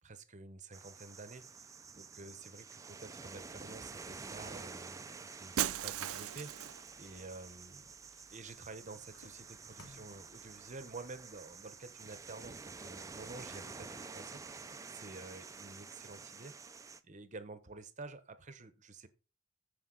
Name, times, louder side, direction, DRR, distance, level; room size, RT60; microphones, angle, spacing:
voice 1, 0.0-1.5 2.0-5.5 5.8-7.9 8.3-19.1, right 3 dB, 35° right, 0.8 m, -50 dB
sound 1, 0.7-17.0, right 4 dB, 15° right, 0.4 m, -49 dB
Shatter, 5.6-6.9, right 11 dB, 70° right, 0.5 m, -36 dB
sound 2, 5.9-12.4, left 1 dB, 75° left, 2.4 m, -64 dB
14.5 x 5.1 x 3.8 m
head